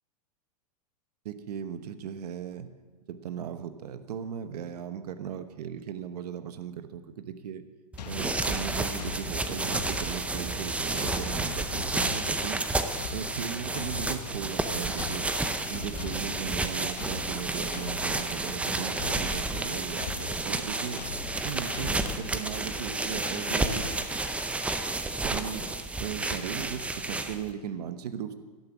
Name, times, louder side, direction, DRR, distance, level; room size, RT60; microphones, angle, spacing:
voice 1, 1.2-2.7 3.1-7.6 8.0-12.6 13.1-15.3 15.7-21.0 21.4-23.9 25.2-25.7 26.0-28.3, right 8 dB, 75° right, 11 dB, 1.1 m, -37 dB
sound 1, 7.9-27.5, right 2 dB, 5° right, 0.6 m, -31 dB
sound 2, 8.0-24.4, left 8 dB, 80° left, 1.2 m, -43 dB
12.5 x 11.0 x 6.1 m, 1.4 s
hypercardioid pair, 135°, 21 cm